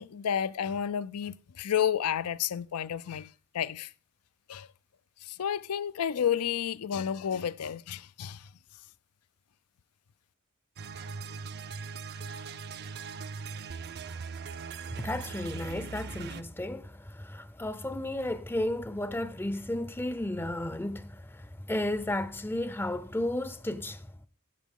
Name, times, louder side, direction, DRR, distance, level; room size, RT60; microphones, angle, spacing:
voice 1, 0.0-3.9 4.5-4.7 5.2-8.5, left 8 dB, 85° left, 0.5 m, -31 dB
sound 1, 10.8-16.4, right 5 dB, 50° right, 0.5 m, -40 dB
voice 2, 14.9-24.1, left 1 dB, 10° left, 0.5 m, -33 dB
16.0 x 8.1 x 3.7 m
head